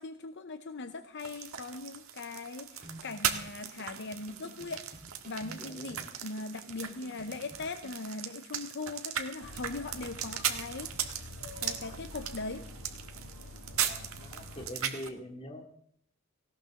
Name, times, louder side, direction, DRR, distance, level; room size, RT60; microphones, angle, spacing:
voice 1, 0.0-4.8 5.3-11.2 11.6-12.6, left 3 dB, 55° left, 8 dB, 0.8 m, -40 dB
sound 1, 1.2-15.1, right 9 dB, 80° right, 1.6 m, -38 dB
sound 2, 2.8-8.0, right 1 dB, 40° right, 3.4 m, -51 dB
voice 2, 5.6-6.1 13.7-15.6, left 1 dB, 30° left, 3 dB, 2.3 m, -44 dB
sound 3, 9.4-14.7, left 1 dB, 80° left, 2.0 m, -47 dB
18.0 x 16.5 x 3.7 m, 0.64 s
head